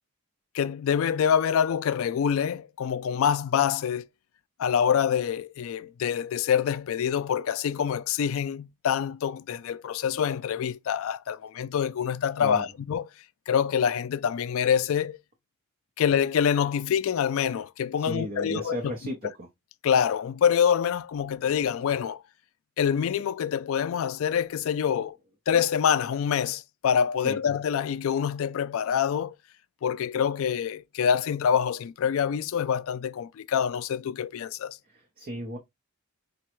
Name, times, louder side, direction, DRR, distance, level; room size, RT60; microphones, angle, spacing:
voice 1, 0.5-4.1 4.6-13.0 13.5-15.2 16.0-18.7 19.8-22.2 22.8-25.2 25.5-29.3 29.8-34.8, left 8 dB, 60° left, 0.3 m, -26 dB
voice 2, 18.0-19.5 27.2-27.4 34.8-35.6, equal, 40° right, 0.7 m, -35 dB
5.0 x 2.2 x 3.0 m
head